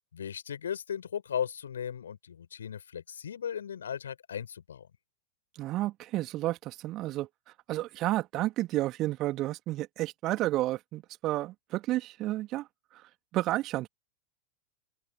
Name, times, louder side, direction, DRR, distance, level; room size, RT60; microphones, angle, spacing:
voice 1, 0.1-4.9, left 8 dB, 65° left, 7.9 m, -36 dB
voice 2, 5.6-7.3 7.7-12.7 12.9-13.9, right 16 dB, 35° right, 2.4 m, -31 dB
open air
figure-of-eight pair, 90°, 0 cm